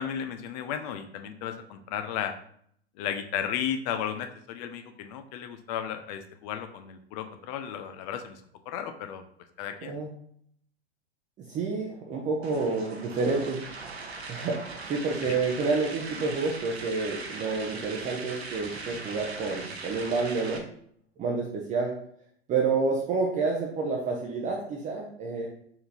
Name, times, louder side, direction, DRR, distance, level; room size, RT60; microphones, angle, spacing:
voice 1, 0.0-2.3 3.0-8.4 8.7-9.2 9.6-9.9 15.2-15.3, left 9 dB, 40° left, 7 dB, 0.5 m, -34 dB
voice 2, 11.5-13.7 14.3-20.6 21.2-22.0 22.5-25.5, right 4 dB, 25° right, -1 dB, 0.6 m, -29 dB
sound 1, 12.4-20.6, right 3 dB, 75° right, 0.9 m, -40 dB
4.3 x 3.8 x 2.8 m, 0.64 s
figure-of-eight pair, 95°, 32 cm